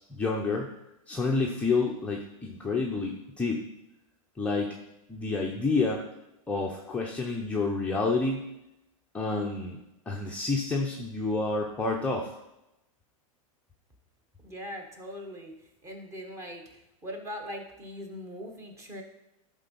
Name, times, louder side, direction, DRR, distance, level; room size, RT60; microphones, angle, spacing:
voice 1, 0.1-0.7 1.1-3.6 4.4-4.8 5.1-6.0 6.5-8.4 9.1-9.8 10.1-12.3, left 3 dB, 5° left, -1 dB, 0.5 m, -29 dB
voice 2, 14.4-19.0, equal, 15° right, 3 dB, 1.2 m, -41 dB
11.0 x 3.7 x 5.3 m, 0.90 s
supercardioid pair, 150°, 18 cm